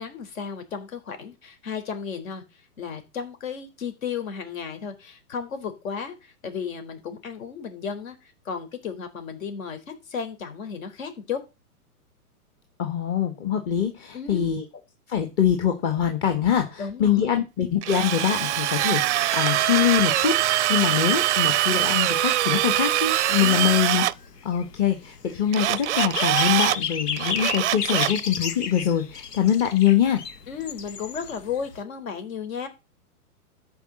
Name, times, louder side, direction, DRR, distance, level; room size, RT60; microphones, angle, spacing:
voice 1, 0.0-11.4 14.1-14.5 16.8-17.3 23.4-23.8 30.5-32.7, left 6 dB, 60° left, 8 dB, 3.9 m, -34 dB
voice 2, 12.8-14.6 15.1-24.0 24.4-30.2, left 9 dB, 25° left, 5 dB, 1.3 m, -24 dB
Drill, 17.8-24.1 25.5-26.8 27.2-28.2, right 13 dB, 50° right, 0.5 m, -23 dB
sound 1, 23.4-31.8, left 7 dB, 85° left, 1.5 m, -33 dB
13.0 x 5.0 x 7.5 m, 0.28 s
hypercardioid pair, 150°, 46 cm